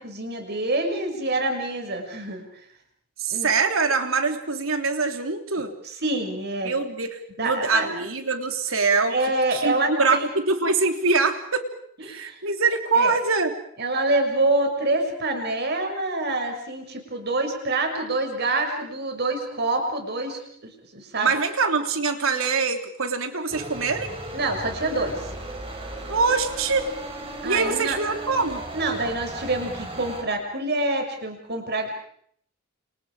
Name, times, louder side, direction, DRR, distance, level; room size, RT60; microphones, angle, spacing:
voice 1, 0.0-2.4 3.3-3.5 5.8-6.7 7.4-7.9 9.1-10.2 12.1-12.4 12.9-13.1 13.8-21.3 24.3-25.3 27.4-28.0 28.7-31.9, right 2 dB, 50° right, 4 dB, 6.5 m, -26 dB
voice 2, 3.2-5.7 6.6-9.1 9.5-11.7 12.0-13.5 21.2-24.1 26.1-26.9 27.4-28.6, right 4 dB, 75° right, 5 dB, 3.4 m, -24 dB
sound 1, 23.5-30.2, right 1 dB, 25° right, 5.6 m, -36 dB
29.5 x 29.0 x 5.0 m, 0.64 s
head